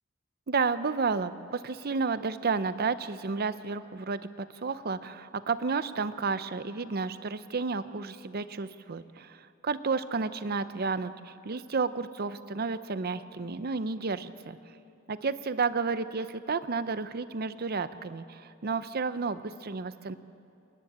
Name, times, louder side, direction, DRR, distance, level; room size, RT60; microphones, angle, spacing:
voice 1, 0.5-14.6 15.1-20.2, right 4 dB, 50° right, 13 dB, 0.7 m, -31 dB
28.5 x 10.5 x 8.8 m, 2.6 s
head